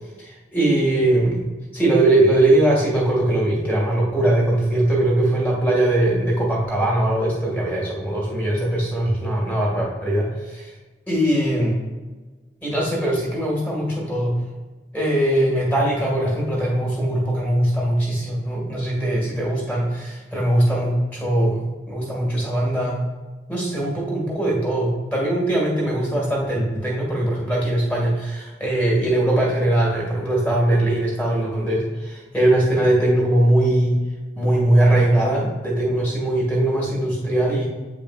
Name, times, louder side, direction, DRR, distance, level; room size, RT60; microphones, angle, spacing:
voice 1, 0.2-1.4 1.7-10.7 11.1-11.8 12.6-14.3 14.9-23.0 23.5-34.0 34.4-37.7, right 1 dB, 10° left, -5 dB, 2.0 m, -21 dB
8.4 x 5.1 x 2.5 m, 1.3 s
head